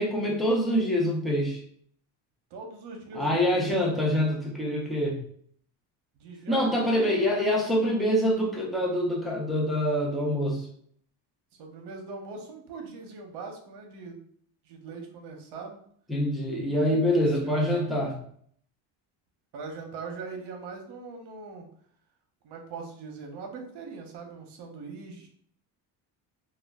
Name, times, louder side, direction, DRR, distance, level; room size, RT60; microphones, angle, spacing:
voice 1, 0.0-1.6 3.1-5.2 6.5-10.7 16.1-18.2, equal, ahead, -3 dB, 0.5 m, -25 dB
voice 2, 2.5-4.0 6.2-7.6 11.6-14.2 14.6-15.8 17.0-17.7 19.5-21.7 22.4-25.3, right 4 dB, 65° right, 2 dB, 0.8 m, -41 dB
2.3 x 2.0 x 3.4 m, 0.62 s
cardioid pair, 120°, 44 cm